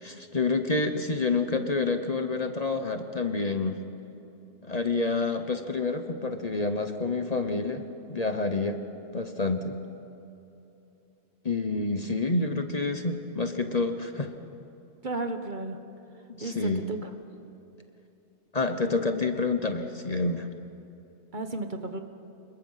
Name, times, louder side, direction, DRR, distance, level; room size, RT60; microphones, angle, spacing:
voice 1, 0.0-3.8 4.6-7.8 8.1-8.8 9.1-9.7 11.4-14.3 16.3-16.8 18.5-20.5, left 3 dB, 35° left, 7 dB, 1.0 m, -28 dB
voice 2, 15.0-15.8 16.4-17.1 21.3-22.0, right 2 dB, 45° right, 7 dB, 1.3 m, -33 dB
25.5 x 21.5 x 5.7 m, 2.9 s
omnidirectional pair, 1.2 m